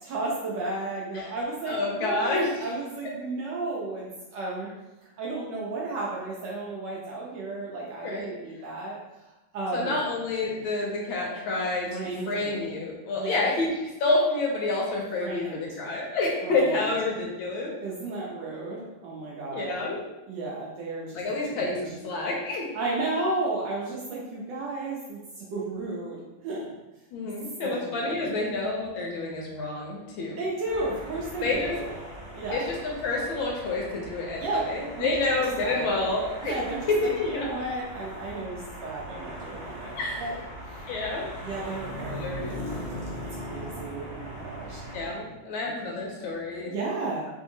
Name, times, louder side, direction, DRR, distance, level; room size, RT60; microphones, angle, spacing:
voice 1, 0.0-4.7 5.2-9.0 9.2-10.0 11.9-12.7 13.2-13.4 15.2-15.7 16.4-16.9 17.8-19.8 20.3-21.2 21.5-21.8 22.7-26.6 27.6-28.4 30.4-31.9 32.3-32.7 34.4-34.7 35.0-35.1 35.6-35.9 36.4-40.3 41.4-42.2 43.5-44.8 46.2-46.4 46.7-47.3, right 2 dB, 75° right, -4 dB, 1.0 m, -33 dB
voice 2, 1.7-2.5 8.0-8.3 9.7-13.7 14.0-17.7 19.5-20.0 21.1-22.7 27.1-30.4 31.4-31.7 32.5-36.5 36.9-37.5 40.0-40.2 40.9-41.3 42.2-42.6 44.9-46.7, left 2 dB, 75° left, -2 dB, 1.3 m, -28 dB
sound 1, 30.6-45.2, equal, 45° right, 0.8 m, -40 dB
3.4 x 2.7 x 2.6 m, 1.0 s
omnidirectional pair, 2.4 m